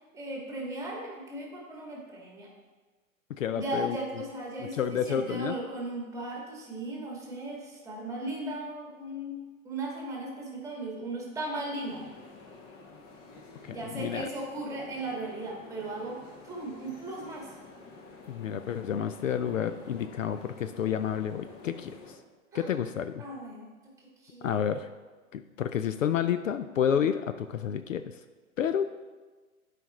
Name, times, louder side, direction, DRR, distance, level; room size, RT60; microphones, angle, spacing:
voice 1, 0.1-2.5 3.5-9.4 9.6-12.0 13.7-16.2 16.4-17.6 22.5-22.8 23.2-23.7 24.2-24.6, right 2 dB, 5° right, -2 dB, 1.7 m, -37 dB
voice 2, 3.4-4.0 4.7-5.6 13.6-14.3 18.3-22.2 22.5-23.2 24.4-24.9 25.3-28.0 28.6-28.9, left 8 dB, 65° left, 10 dB, 0.5 m, -30 dB
sound 1, 11.8-22.2, left 3 dB, 25° left, 0.8 m, -50 dB
12.0 x 5.0 x 3.1 m, 1.3 s
figure-of-eight pair, 110°, 42 cm